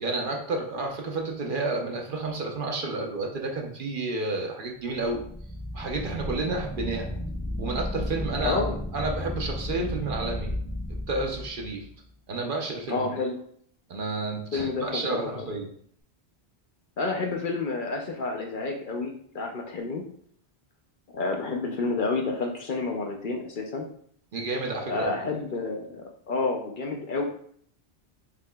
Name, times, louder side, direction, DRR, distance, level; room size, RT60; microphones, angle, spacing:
voice 1, 0.0-5.2 5.7-7.1 7.6-8.6 8.9-10.5 11.1-11.9 12.3-13.0 13.9-15.7 24.3-25.1, right 3 dB, 55° right, 1 dB, 0.8 m, -30 dB
sound 1, 4.9-11.9, left 1 dB, 20° left, 0.8 m, -34 dB
voice 2, 8.4-8.7 12.9-13.3 14.5-15.5 17.0-20.0 21.1-23.9 24.9-27.2, left 3 dB, 60° left, 2 dB, 0.7 m, -29 dB
5.9 x 2.8 x 2.2 m, 0.62 s
omnidirectional pair, 1.1 m